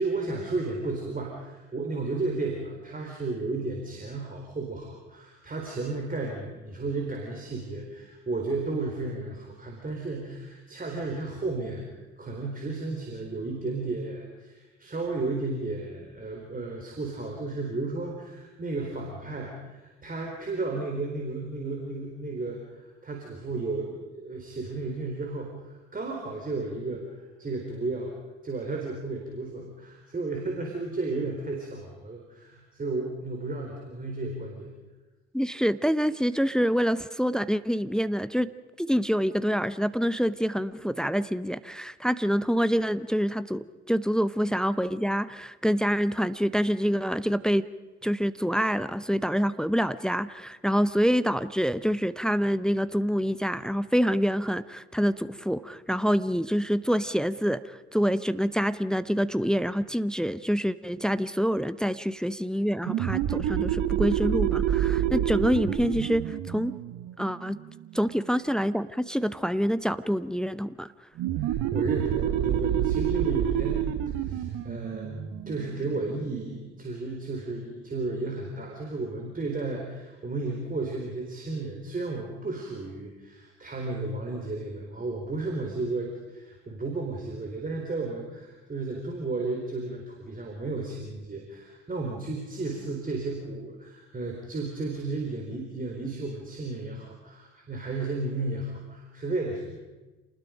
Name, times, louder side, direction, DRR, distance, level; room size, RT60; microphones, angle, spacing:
voice 1, 0.0-11.9 12.2-28.1 28.4-34.7 71.3-99.8, right 3 dB, 25° right, 0 dB, 4.3 m, -33 dB
voice 2, 35.3-38.5 38.8-47.7 48.0-66.7 67.2-67.6 67.9-70.9, equal, ahead, 15 dB, 0.7 m, -26 dB
sound 1, 62.8-68.1 71.2-76.5, right 10 dB, 50° right, 1.2 m, -28 dB
28.0 x 20.0 x 5.2 m, 1.2 s
figure-of-eight pair, 55°, 34 cm